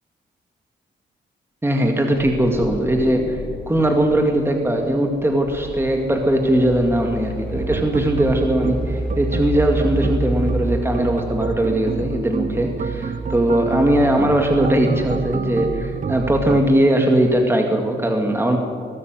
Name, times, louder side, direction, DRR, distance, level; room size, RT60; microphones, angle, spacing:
voice 1, 1.6-18.6, right 1 dB, 10° right, 2 dB, 2.1 m, -19 dB
sound 1, 2.1-7.2 7.5-7.7, left 2 dB, 35° left, 4.8 m, -37 dB
sound 2, 5.4-10.8, right 1 dB, 5° left, 5.0 m, -28 dB
sound 3, 7.5-16.6, right 5 dB, 45° right, 0.9 m, -28 dB
22.5 x 12.5 x 9.2 m, 2.3 s
cardioid pair, 90°, 19 cm